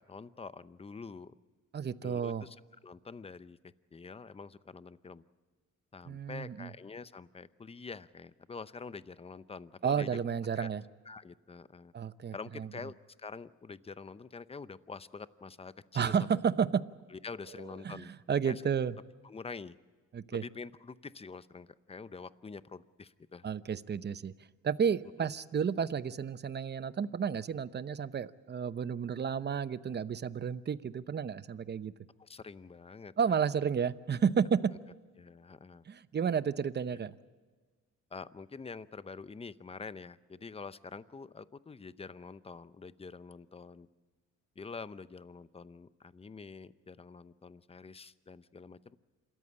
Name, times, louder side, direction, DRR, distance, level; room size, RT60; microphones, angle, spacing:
voice 1, 0.0-1.3 2.0-2.6 2.8-5.2 5.9-10.2 10.5-10.7 11.1-11.9 12.3-16.2 17.1-18.1 18.4-18.6 19.2-19.8 20.3-23.4 32.2-33.4 35.2-35.8 38.1-43.9 44.6-49.0, left 4 dB, 20° left, 15 dB, 0.7 m, -46 dB
voice 2, 1.7-2.4 6.1-6.7 9.8-10.8 11.9-12.7 15.9-16.8 17.8-18.0 18.3-18.9 20.1-20.4 23.4-24.3 24.6-31.9 33.2-34.7 35.9-37.1, right 7 dB, 35° right, 15 dB, 0.8 m, -31 dB
27.0 x 14.0 x 8.7 m, 1.4 s
cardioid pair, 90°, 30 cm